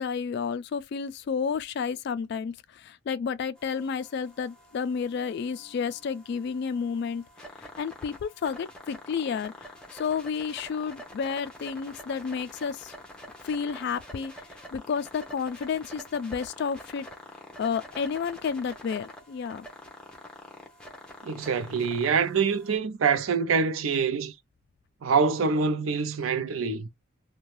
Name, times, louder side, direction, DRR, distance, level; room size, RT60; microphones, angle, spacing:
voice 1, 0.0-7.2 7.6-12.9 13.4-14.3 14.7-17.1 17.6-19.7, left 6 dB, 55° left, 0.3 m, -31 dB
sound 1, 3.6-22.8, left 1 dB, 5° left, 0.7 m, -47 dB
voice 2, 21.2-24.3 25.0-26.9, right 5 dB, 85° right, 0.5 m, -25 dB
2.5 x 2.2 x 3.1 m
head